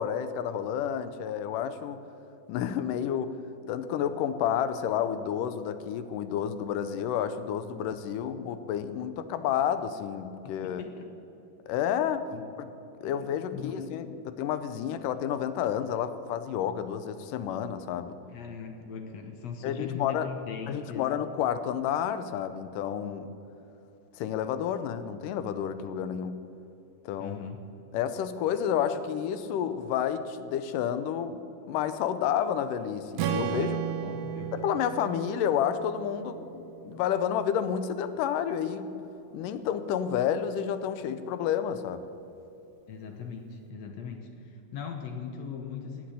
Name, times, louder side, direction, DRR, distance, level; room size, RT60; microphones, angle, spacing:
voice 1, 0.0-2.0 2.5-3.4 3.7-10.8 11.7-12.3 12.6-12.7 13.0-18.2 19.6-20.3 20.7-23.3 24.1-26.4 27.1-27.4 27.9-31.4 31.7-33.8 34.5-38.9 39.3-42.0, left 9 dB, 90° left, 11 dB, 2.3 m, -30 dB
voice 2, 10.6-11.1 12.3-12.4 13.0-13.3 13.5-13.9 18.3-21.1 27.2-27.6 34.0-34.5 42.9-46.1, left 6 dB, 65° left, 5 dB, 1.9 m, -39 dB
Strum, 33.2-37.4, right 8 dB, 70° right, 2.2 m, -34 dB
17.0 x 6.1 x 10.0 m, 2.9 s
omnidirectional pair, 3.8 m